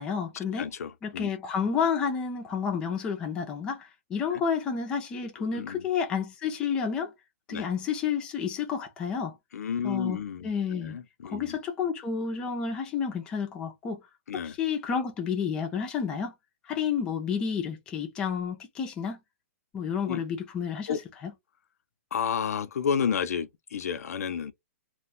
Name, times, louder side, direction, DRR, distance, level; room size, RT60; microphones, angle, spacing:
voice 1, 0.0-0.7 1.0-7.1 7.5-9.4 9.8-11.0 11.2-14.0 14.6-16.3 16.6-19.2 19.7-21.0 21.2-21.3, left 6 dB, 10° left, 0.4 m, -30 dB
voice 2, 0.6-1.3 4.3-4.4 5.4-5.8 7.5-7.7 9.5-11.6 14.3-14.6 20.0-20.2 20.9-21.0 22.1-24.5, left 7 dB, 85° left, 0.5 m, -31 dB
2.4 x 2.2 x 3.6 m
hypercardioid pair, 175°, 8 cm